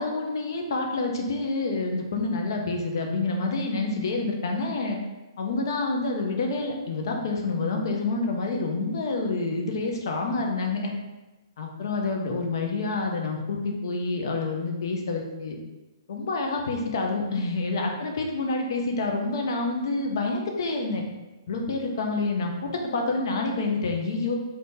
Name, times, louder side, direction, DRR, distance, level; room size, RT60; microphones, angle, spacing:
voice 1, 0.0-5.0 5.4-10.9 11.6-15.6 16.1-21.0 21.5-24.4, left 3 dB, 55° left, 1 dB, 0.6 m, -28 dB
2.8 x 2.7 x 3.6 m, 1.1 s
hypercardioid pair, 170°, 3 cm